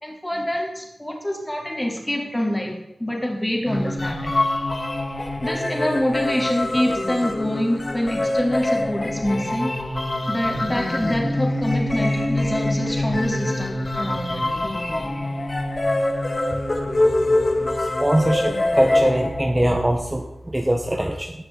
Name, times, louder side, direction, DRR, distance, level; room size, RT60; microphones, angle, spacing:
voice 1, 0.0-4.3 5.4-9.8 10.3-14.4, left 1 dB, 15° left, 0 dB, 3.6 m, -26 dB
sound 1, 3.7-19.7, left 1 dB, 40° left, 2.0 m, -24 dB
voice 2, 17.8-21.3, right 1 dB, 20° right, 3 dB, 1.2 m, -22 dB
18.0 x 6.7 x 4.1 m, 0.92 s
cardioid pair, 50°, 0 cm